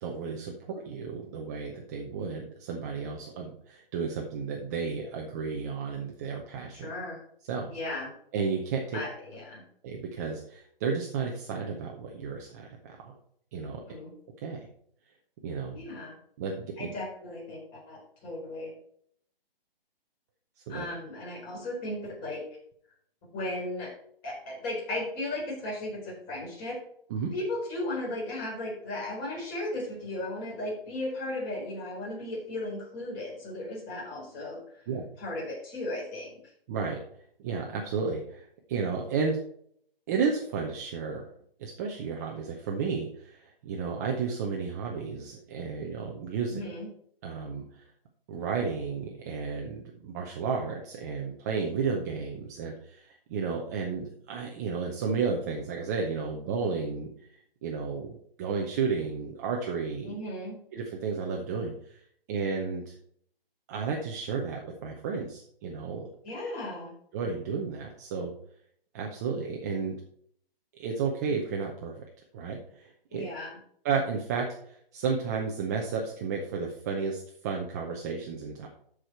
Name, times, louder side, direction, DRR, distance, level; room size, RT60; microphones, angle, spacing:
voice 1, 0.0-6.9 7.5-7.7 8.3-9.0 9.8-13.1 13.5-13.8 14.4-14.7 15.4-15.8 16.4-16.9 20.7-20.8 27.1-27.3 34.9-35.0 36.7-37.0 37.4-39.4 40.1-41.2 41.6-46.6 47.2-47.9 48.3-57.1 57.6-60.2 60.7-62.0 62.3-62.9 63.7-66.1 67.1-68.3 68.9-69.9 70.8-72.0 72.3-73.3 73.8-78.7, right 5 dB, 15° right, 0 dB, 0.7 m, -32 dB
voice 2, 6.7-7.2 7.7-8.1 8.9-9.6 13.8-14.1 15.7-16.2 16.8-18.7 20.7-22.4 23.3-23.9 24.2-26.8 27.3-34.8 35.2-36.4 46.5-46.9 60.0-60.6 66.2-66.9 73.1-73.6, left 1 dB, 25° left, -3 dB, 4.3 m, -36 dB
13.0 x 4.9 x 4.5 m, 0.65 s
hypercardioid pair, 155°, 30 cm